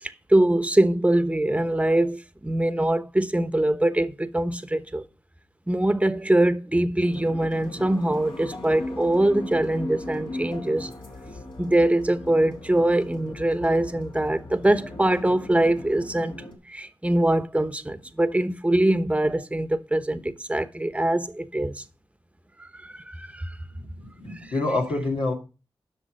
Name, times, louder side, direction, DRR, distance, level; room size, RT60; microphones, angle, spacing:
voice 1, 0.0-5.0 5.7-10.9 11.6-21.8 22.6-23.6 24.3-24.5, right 1 dB, 15° right, 1.0 m, -23 dB
sound 1, 7.0-16.5, left 1 dB, 60° left, 2.6 m, -38 dB
voice 2, 23.7-25.3, left 2 dB, 80° left, 2.5 m, -27 dB
8.2 x 6.0 x 6.4 m
cardioid pair, 45°, 10 cm